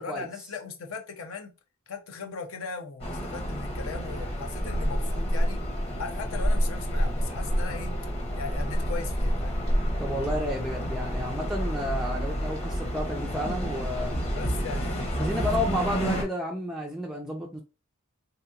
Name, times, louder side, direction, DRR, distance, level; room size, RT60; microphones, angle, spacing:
voice 1, 0.0-1.5 1.9-5.6 6.0-7.9 8.3-9.6 14.4-15.3 15.7-16.2, left 5 dB, 70° left, 0.6 m, -38 dB
sound 1, 3.0-16.2, equal, 30° left, 0.8 m, -29 dB
voice 2, 10.0-14.1 15.2-17.6, left 1 dB, ahead, 0.3 m, -31 dB
3.4 x 2.8 x 2.3 m
head